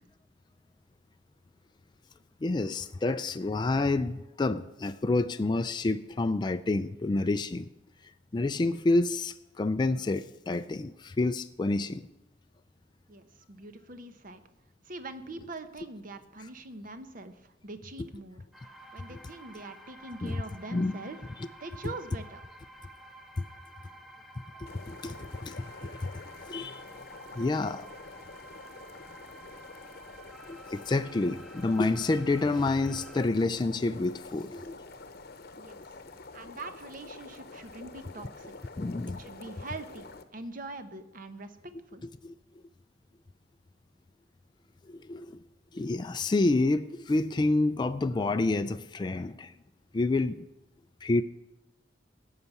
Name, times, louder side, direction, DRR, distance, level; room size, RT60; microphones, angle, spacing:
voice 1, 2.4-7.7 8.3-12.0 20.2-20.4 20.7-20.9 23.4-23.5 24.9-26.8 27.4-27.9 30.5-34.7 38.8-39.2 42.2-42.3 44.9-45.4 45.7-49.5 49.9-50.5 51.0-51.2, left 2 dB, 25° left, 0.3 m, -28 dB
voice 2, 13.1-14.4 14.8-18.4 18.9-21.2 21.6-22.4 35.6-35.8 36.3-38.7 39.2-42.1, right 2 dB, 50° right, 0.9 m, -43 dB
sound 1, 18.5-33.3, right 1 dB, ahead, 0.8 m, -51 dB
sound 2, 24.7-40.2, left 3 dB, 55° left, 0.9 m, -48 dB
16.0 x 5.8 x 8.1 m
head